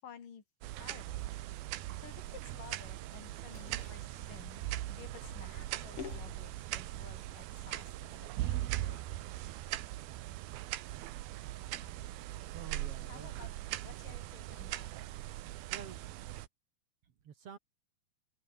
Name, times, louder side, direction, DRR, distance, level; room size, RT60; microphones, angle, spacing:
voice 1, 0.0-0.4 0.8-1.5 2.0-4.6 4.9-9.2 11.8-11.9 13.1-14.9, left 8 dB, 65° left, 4.8 m, -54 dB
sound 1, 0.6-16.5, right 15 dB, 90° right, 3.0 m, -40 dB
sound 2, 2.8-2.9 3.5-6.8 7.2-7.9, left 6 dB, 40° left, 3.3 m, -49 dB
voice 2, 12.5-13.3 15.7-16.0 17.2-17.6, right 7 dB, 50° right, 2.3 m, -48 dB
open air
omnidirectional pair, 4.2 m